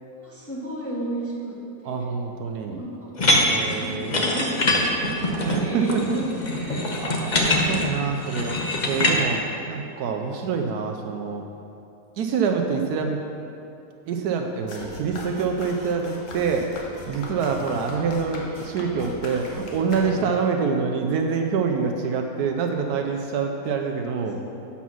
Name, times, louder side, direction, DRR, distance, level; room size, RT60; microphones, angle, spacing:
voice 1, 0.0-1.6 1.8-2.1 2.7-6.3 17.7-17.8 23.3-23.4 24.1-24.4, right 1 dB, 10° left, -7 dB, 1.4 m, -34 dB
voice 2, 1.8-2.8 3.5-4.3 5.5-6.2 6.6-9.4 9.7-11.4 12.2-13.2 14.1-16.7 17.1-24.4, right 5 dB, 75° right, 3 dB, 1.1 m, -26 dB
sound 1, 3.2-9.2, left 1 dB, 40° left, 0.7 m, -23 dB
sound 2, 14.7-20.5, left 2 dB, 55° left, 1.3 m, -38 dB
7.1 x 5.7 x 6.1 m, 2.6 s
omnidirectional pair, 1.7 m